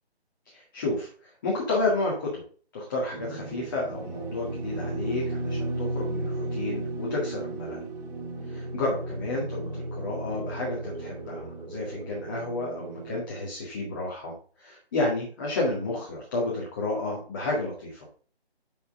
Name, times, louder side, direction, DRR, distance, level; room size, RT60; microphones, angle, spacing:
voice 1, 0.5-2.4 2.7-7.8 8.5-18.1, left 2 dB, 20° left, -4 dB, 1.9 m, -31 dB
sound 1, 3.1-13.2, right 2 dB, 40° right, 3.0 m, -34 dB
10.5 x 5.7 x 3.7 m, 0.42 s
figure-of-eight pair, 160°, 32 cm